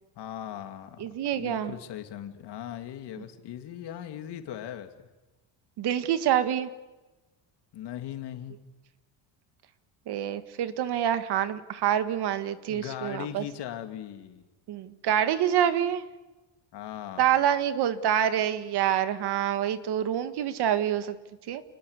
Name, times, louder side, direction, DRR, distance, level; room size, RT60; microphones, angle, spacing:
voice 1, 0.2-4.9 7.7-8.6 12.7-14.4 16.7-17.4, left 10 dB, 60° left, 7 dB, 2.7 m, -39 dB
voice 2, 1.0-1.7 5.8-6.7 10.1-13.4 14.7-16.0 17.2-21.2 21.5-21.6, right 10 dB, 60° right, 12 dB, 1.7 m, -26 dB
28.5 x 20.5 x 8.3 m, 1.1 s
cardioid pair, 155°, 45 cm